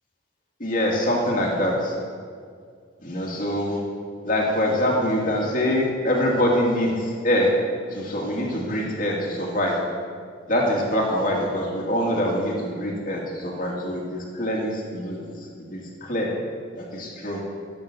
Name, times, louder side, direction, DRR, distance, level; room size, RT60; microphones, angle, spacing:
voice 1, 0.6-1.9 3.0-3.8 4.2-7.0 7.2-7.5 7.9-9.8 10.5-15.2 15.7-16.3 16.7-17.4, left 1 dB, 40° left, -2 dB, 2.5 m, -24 dB
15.0 x 7.8 x 7.0 m, 2.1 s
head